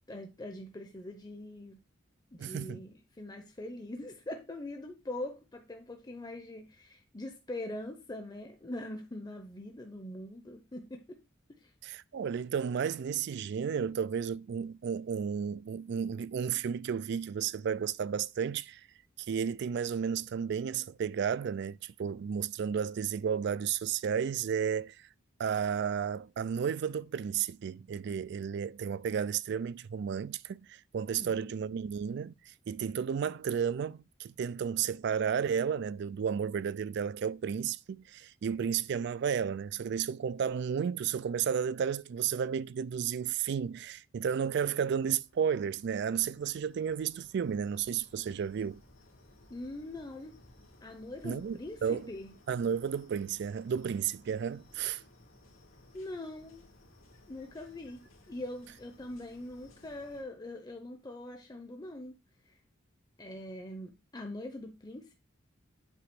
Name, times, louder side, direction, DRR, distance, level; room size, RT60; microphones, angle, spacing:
voice 1, 0.1-1.8 2.3-11.2 11.6-11.7 31.2-31.5 49.5-50.4 50.8-52.3 55.9-56.7 57.3-58.0 58.3-62.2 63.2-65.1, left 1 dB, 20° left, 0.7 m, -42 dB
voice 2, 2.4-2.8 11.8-18.8 19.2-25.0 25.4-32.3 32.7-48.8 51.2-52.1 52.5-55.0, right 7 dB, 60° right, 0.3 m, -32 dB
sound 1, 44.4-60.2, left 1 dB, 90° left, 2.3 m, -60 dB
8.2 x 2.9 x 6.0 m
head